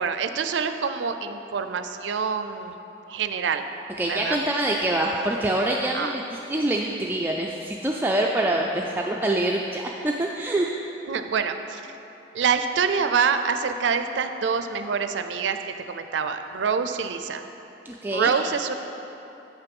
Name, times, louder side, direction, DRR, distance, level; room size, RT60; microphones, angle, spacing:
voice 1, 0.0-2.8 3.1-3.7 4.1-4.4 5.9-6.1 11.1-11.8 12.3-15.6 15.9-17.4 18.1-18.7, right 6 dB, 90° right, 9 dB, 0.4 m, -26 dB
voice 2, 4.0-10.8 17.9-18.3, right 1 dB, 10° right, -1 dB, 0.3 m, -25 dB
7.6 x 5.7 x 5.3 m, 3.0 s
head